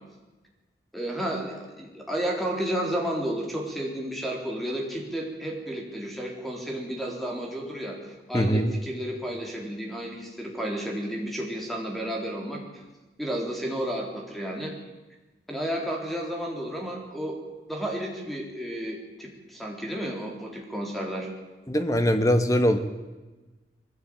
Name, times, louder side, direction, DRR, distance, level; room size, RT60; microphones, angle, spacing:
voice 1, 0.9-12.6 13.2-14.7 15.5-17.4 17.7-21.3, right 1 dB, ahead, 0 dB, 3.9 m, -32 dB
voice 2, 8.3-8.7 21.7-22.8, equal, 20° left, 8 dB, 1.5 m, -22 dB
21.0 x 16.0 x 9.0 m, 1.2 s
head